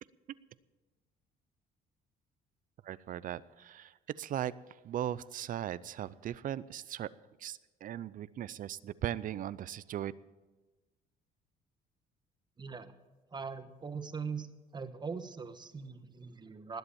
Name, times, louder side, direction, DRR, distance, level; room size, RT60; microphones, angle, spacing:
voice 1, 2.8-4.5 4.8-7.1 7.4-10.1, right 11 dB, 55° right, 18 dB, 0.5 m, -38 dB
voice 2, 12.6-12.9 13.3-14.5 14.7-16.8, right 5 dB, 25° right, 10 dB, 1.1 m, -41 dB
20.0 x 7.9 x 7.1 m, 1.2 s
cardioid pair, 110°, 17 cm